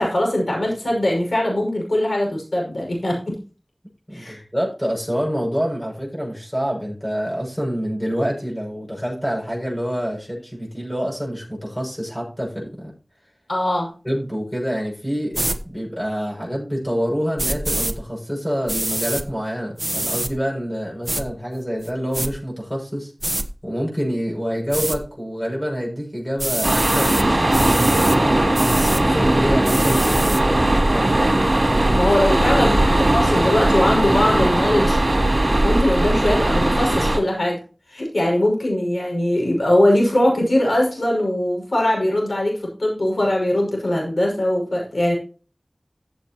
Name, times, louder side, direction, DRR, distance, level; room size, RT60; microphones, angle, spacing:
voice 1, 0.0-3.3 4.1-4.4 13.5-13.9 32.0-35.2 35.4-37.6 37.9-45.1, left 1 dB, 85° left, -1 dB, 5.8 m, -21 dB
voice 2, 4.1-12.9 14.0-15.4 15.6-23.1 23.6-28.1 28.7-31.9, equal, 10° left, -4 dB, 6.9 m, -27 dB
sound 1, 15.3-15.6 17.4-17.9 18.7-19.2 19.8-20.3 21.0-21.2 21.8-22.3 23.2-23.4 24.7-25.0 26.4-27.2 27.5-28.2 28.5-29.0 29.6-30.4, right 1 dB, 30° right, 1.1 m, -25 dB
sound 2, 26.6-37.2, right 1 dB, 55° right, 3.0 m, -18 dB
15.0 x 7.5 x 3.0 m, 0.36 s
wide cardioid pair, 40°, 0 cm